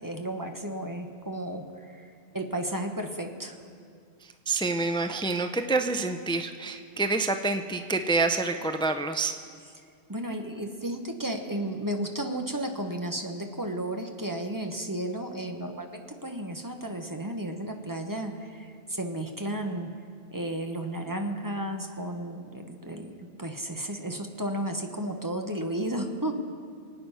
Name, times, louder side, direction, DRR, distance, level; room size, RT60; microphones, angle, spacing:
voice 1, 0.0-3.6 10.1-19.9 20.3-26.3, right 1 dB, 20° right, 4 dB, 1.1 m, -33 dB
voice 2, 4.2-9.3, right 3 dB, 5° left, 7 dB, 0.4 m, -27 dB
25.0 x 9.2 x 5.6 m, 2.2 s
omnidirectional pair, 1.1 m